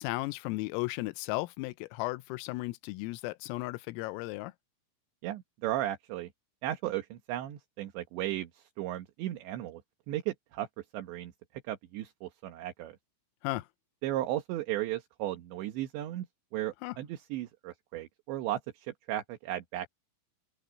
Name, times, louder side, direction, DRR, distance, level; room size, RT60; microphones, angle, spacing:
voice 1, 0.0-4.5 13.4-13.7 16.8-17.0, left 20 dB, 85° left, 3.4 m, -35 dB
voice 2, 5.2-6.3 6.6-9.8 10.1-11.3 11.7-13.0 14.0-16.3 16.5-19.9, right 14 dB, 70° right, 3.3 m, -35 dB
open air
omnidirectional pair, 6.0 m